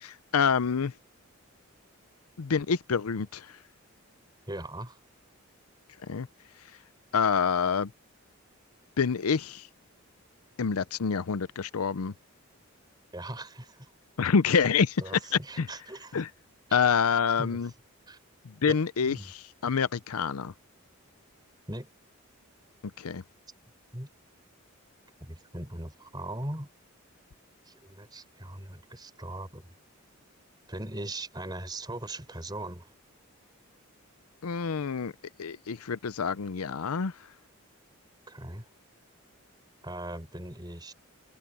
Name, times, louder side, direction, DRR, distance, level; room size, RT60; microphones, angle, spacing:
voice 1, 0.0-0.9 2.4-3.5 6.1-6.3 7.1-7.9 9.0-9.7 10.6-12.1 14.2-15.0 15.3-15.7 16.1-16.3 16.7-17.7 18.6-19.4 19.6-20.5 23.0-23.2 34.4-35.1 35.4-37.1, left 6 dB, 85° left, 0.6 m, -27 dB
voice 2, 4.5-5.0 13.1-13.9 15.0-16.3 16.7-16.8 17.4-17.6 18.1-18.2 18.7-18.8 19.0-19.3 21.7-21.9 23.9-24.1 25.2-26.7 27.7-29.7 30.7-32.9 38.3-38.7 39.8-40.9, right 1 dB, 20° right, 4.6 m, -39 dB
head